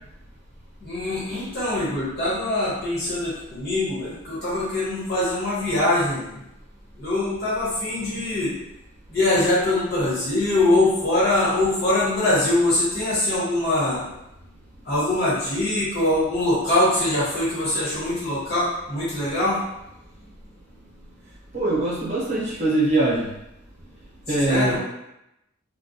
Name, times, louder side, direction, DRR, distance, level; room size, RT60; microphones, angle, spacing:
voice 1, 0.8-6.3 7.0-8.5 9.1-14.0 14.8-19.6 24.4-24.8, left 1 dB, 50° left, -9 dB, 1.2 m, -23 dB
voice 2, 21.5-23.3 24.3-24.8, right 2 dB, 35° right, -6 dB, 0.8 m, -22 dB
2.3 x 2.1 x 2.7 m, 0.86 s
head